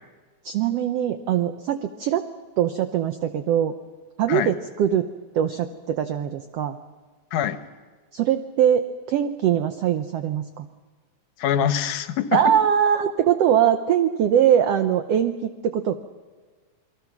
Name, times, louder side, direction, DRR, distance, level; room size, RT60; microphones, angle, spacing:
voice 1, 0.4-2.2 2.6-3.7 4.2-5.1 5.3-6.8 8.1-10.7 12.3-15.9, right 9 dB, 70° right, 9 dB, 1.6 m, -22 dB
voice 2, 11.4-12.5, left 9 dB, 85° left, 10 dB, 2.5 m, -24 dB
28.5 x 23.0 x 6.0 m, 1.4 s
omnidirectional pair, 3.5 m